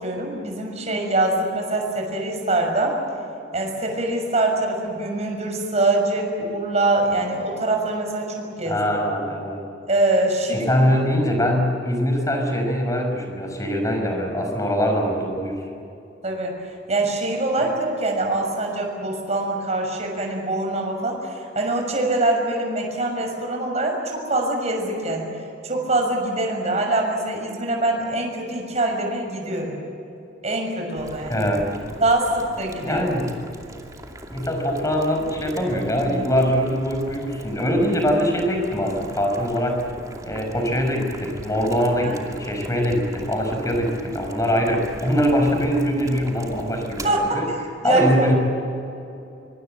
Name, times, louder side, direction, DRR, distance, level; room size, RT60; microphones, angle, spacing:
voice 1, 0.0-3.0 3.5-8.8 9.9-10.7 16.2-16.5 16.9-25.3 25.6-29.7 30.4-31.4 32.0-33.0 42.0-42.2 47.0-47.4 47.8-48.4, right 2 dB, 35° right, 1 dB, 6.3 m, -24 dB
voice 2, 8.7-9.6 10.5-15.6 31.3-31.7 32.8-33.4 34.3-39.9 40.2-47.5 47.8-48.4, equal, 15° left, 3 dB, 5.4 m, -22 dB
Boiling, 31.0-47.1, right 1 dB, 20° right, 2.6 m, -40 dB
25.0 x 25.0 x 7.9 m, 2.7 s
head